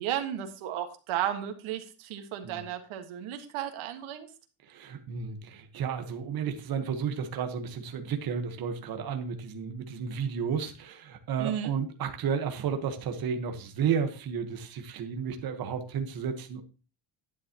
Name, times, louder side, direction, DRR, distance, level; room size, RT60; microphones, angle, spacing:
voice 1, 0.0-4.3 11.4-11.7, right 11 dB, 75° right, 6 dB, 1.7 m, -34 dB
voice 2, 4.6-16.6, right 7 dB, 45° right, 6 dB, 1.4 m, -32 dB
11.0 x 9.9 x 2.9 m, 0.33 s
cardioid pair, 175°, 50 cm